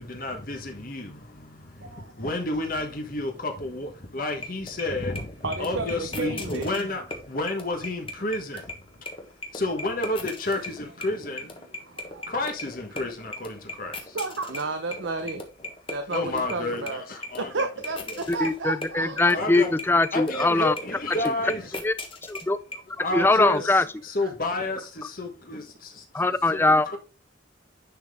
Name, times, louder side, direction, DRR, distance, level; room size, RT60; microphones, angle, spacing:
voice 1, 0.0-8.6 9.5-11.8 12.2-14.2 16.1-17.7 18.1-18.2 19.3-19.7 20.1-21.7 23.0-26.0 26.5-27.0, left 2 dB, 50° left, 1.4 m, -31 dB
voice 2, 1.8-2.1 5.4-6.7 8.5-8.6 11.8-12.3 13.9-15.5 15.9-17.0 17.4-19.5 23.2-23.7 24.2-24.3, right 3 dB, 90° right, 0.8 m, -32 dB
sound 1, 4.4-22.8, left 2 dB, 30° left, 1.3 m, -37 dB
voice 3, 18.3-20.7 21.8-21.9 22.3-22.6 23.1-23.8 26.1-26.9, left 2 dB, 10° left, 0.3 m, -21 dB
10.0 x 4.2 x 3.6 m
head